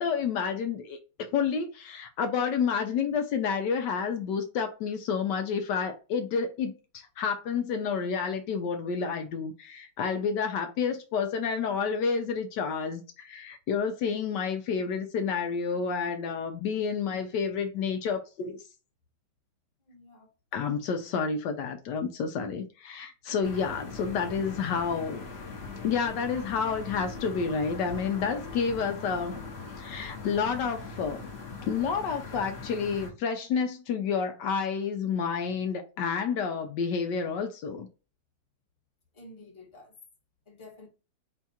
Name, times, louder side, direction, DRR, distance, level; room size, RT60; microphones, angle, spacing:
voice 1, 0.0-18.6 20.5-25.3 25.8-29.4 29.8-31.3 31.6-37.9, left 6 dB, 75° left, 1.2 m, -30 dB
voice 2, 19.9-20.3 20.6-20.7 39.1-40.0 40.5-40.9, left 2 dB, 20° left, 1.0 m, -50 dB
sound 1, 23.4-33.1, left 4 dB, 45° left, 1.0 m, -41 dB
4.5 x 2.4 x 4.1 m
omnidirectional pair, 2.0 m